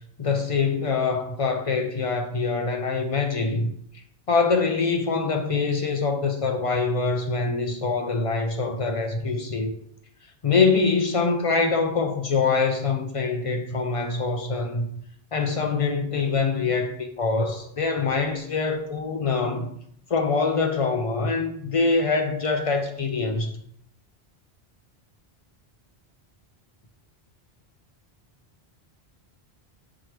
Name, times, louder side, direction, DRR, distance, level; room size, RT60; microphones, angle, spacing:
voice 1, 0.2-3.7 4.3-9.8 10.4-14.9 15.3-19.7 20.1-23.6, left 4 dB, 55° left, 0.4 m, -24 dB
5.4 x 2.9 x 3.2 m
omnidirectional pair, 1.1 m